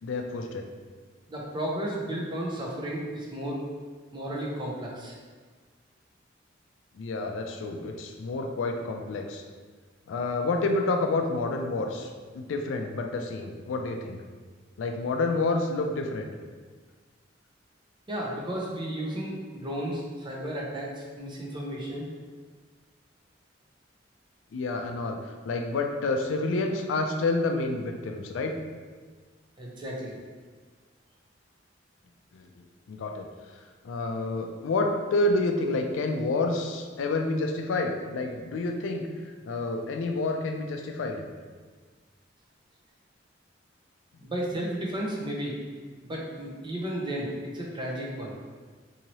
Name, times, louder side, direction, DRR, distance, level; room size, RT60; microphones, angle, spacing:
voice 1, 0.0-0.6 6.9-9.4 10.1-14.2 14.8-16.3 24.5-28.6 32.3-33.3 33.8-39.1 39.4-41.2, left 2 dB, 90° left, 4 dB, 0.3 m, -29 dB
voice 2, 1.3-3.6 4.1-5.1 18.1-22.1 29.6-30.2 44.2-45.6 46.0-48.3, right 1 dB, 25° right, -3 dB, 0.6 m, -33 dB
2.7 x 2.7 x 3.0 m, 1.5 s
head